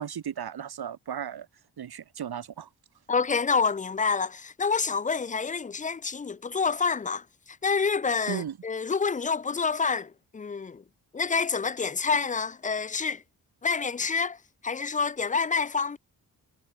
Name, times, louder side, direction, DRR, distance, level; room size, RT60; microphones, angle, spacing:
voice 1, 0.0-1.5 1.8-2.7 8.3-8.6, right 9 dB, 80° right, 3.7 m, -35 dB
voice 2, 3.1-10.8 11.1-13.2 13.6-14.4 14.6-16.0, left 5 dB, 20° left, 0.4 m, -28 dB
wide cardioid pair, 105°, 37 cm